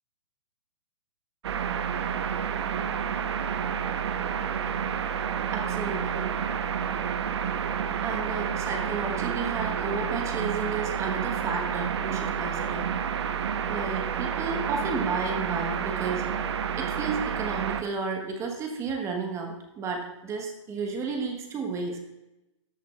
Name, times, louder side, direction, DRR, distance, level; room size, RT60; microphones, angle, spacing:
sound 1, 1.4-17.8, right 7 dB, 55° right, 0.8 m, -29 dB
voice 1, 5.5-6.4 8.0-12.9 13.7-16.3 16.8-22.0, right 4 dB, 15° right, 3 dB, 1.1 m, -32 dB
13.5 x 8.2 x 2.4 m, 0.97 s
hypercardioid pair, 130°, 16 cm